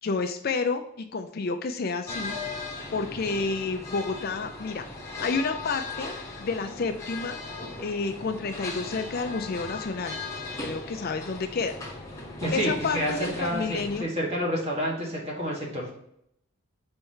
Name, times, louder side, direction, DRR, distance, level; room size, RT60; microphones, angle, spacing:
voice 1, 0.0-2.3 2.9-4.9 5.2-7.4 7.8-10.2 10.6-11.7 12.5-14.1, left 4 dB, 45° left, 7 dB, 0.4 m, -30 dB
sound 1, 2.1-14.0, left 3 dB, 15° left, 1.1 m, -38 dB
voice 2, 12.4-15.9, equal, 25° right, -3 dB, 1.8 m, -29 dB
4.5 x 4.4 x 5.5 m, 0.73 s
head